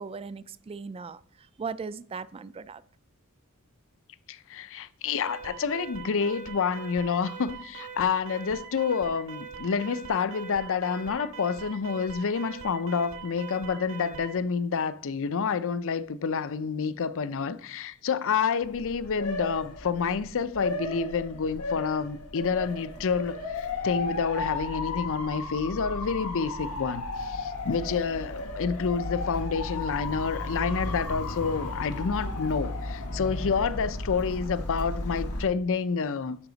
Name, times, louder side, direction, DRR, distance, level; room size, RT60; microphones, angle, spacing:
voice 1, 0.0-2.8, right 5 dB, 25° right, 0.3 m, -38 dB
voice 2, 4.3-36.4, left 5 dB, 60° left, 0.5 m, -28 dB
Alarm, 5.2-14.4, right 7 dB, 65° right, 1.8 m, -42 dB
Motor vehicle (road) / Siren, 18.6-35.4, left 2 dB, 90° left, 1.6 m, -34 dB
11.5 x 5.8 x 4.0 m
head